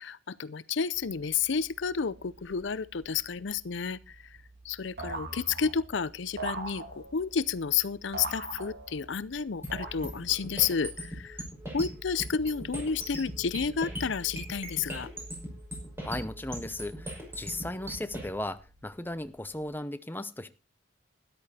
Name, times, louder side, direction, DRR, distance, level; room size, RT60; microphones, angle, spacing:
voice 1, 0.0-4.2 4.6-11.4 11.7-15.1, left 6 dB, 65° left, 0.6 m, -31 dB
sound 1, 0.9-19.7, right 2 dB, 85° right, 4.7 m, -56 dB
sound 2, 5.0-5.9 6.4-7.3 8.1-9.2 9.7-10.4, right 2 dB, 55° right, 2.9 m, -40 dB
sound 3, 9.6-18.3, equal, 15° right, 5.7 m, -40 dB
voice 2, 16.0-20.5, left 1 dB, 10° left, 0.7 m, -36 dB
13.5 x 11.0 x 4.2 m
head